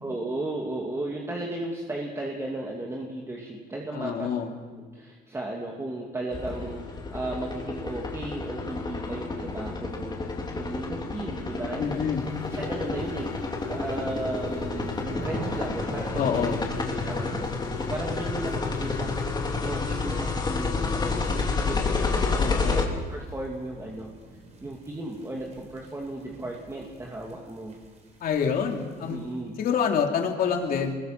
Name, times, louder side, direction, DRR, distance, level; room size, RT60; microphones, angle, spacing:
voice 1, 0.0-4.3 4.8-10.2 10.5-12.1 12.5-13.3 13.7-16.5 16.8-22.3 22.6-24.1 24.6-27.7 29.1-29.5, right 1 dB, 15° right, -1 dB, 2.6 m, -35 dB
voice 2, 3.9-4.5 11.8-12.2 16.1-16.6 22.4-22.8 28.2-29.2 29.6-31.0, left 7 dB, 60° left, 2 dB, 3.1 m, -27 dB
sound 1, 6.3-22.9, left 4 dB, 25° left, 2.9 m, -30 dB
sound 2, 11.9-29.5, right 2 dB, 40° right, 4.7 m, -44 dB
24.0 x 21.5 x 6.0 m, 1.5 s
cardioid pair, 110°, 17 cm